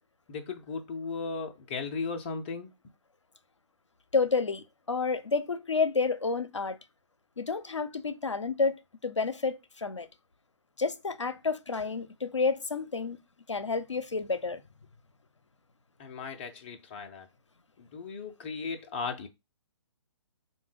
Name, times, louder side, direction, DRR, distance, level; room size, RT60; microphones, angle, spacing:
voice 1, 0.3-2.7 16.0-17.3 17.8-19.3, left 4 dB, 25° left, 0.4 m, -36 dB
voice 2, 4.1-6.8 7.4-10.1 10.8-13.2 13.5-14.6, left 4 dB, 80° left, 0.5 m, -30 dB
5.0 x 2.2 x 3.2 m
figure-of-eight pair, 130°, 15 cm